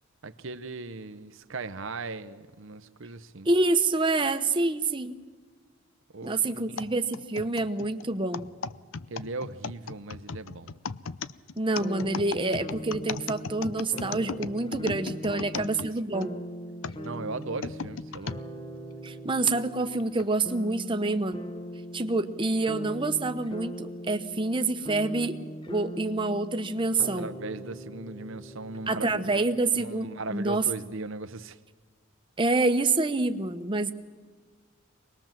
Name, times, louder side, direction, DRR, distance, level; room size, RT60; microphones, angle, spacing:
voice 1, 0.2-3.5 6.1-6.9 9.1-10.7 15.2-15.9 17.0-18.4 27.0-29.4 29.8-31.6, right 3 dB, 65° right, 10 dB, 0.8 m, -38 dB
voice 2, 3.4-5.1 6.2-8.5 11.6-16.4 19.0-21.4 21.9-25.4 25.7-27.3 28.9-30.6 32.4-33.9, right 2 dB, 25° right, 8 dB, 1.0 m, -27 dB
sound 1, 6.8-16.3 16.8-18.4 19.0-19.1 20.0-20.3, left 5 dB, 70° left, 0.6 m, -37 dB
sound 2, 11.8-29.6, equal, 20° left, 1.2 m, -41 dB
24.5 x 20.5 x 7.4 m, 1.5 s
head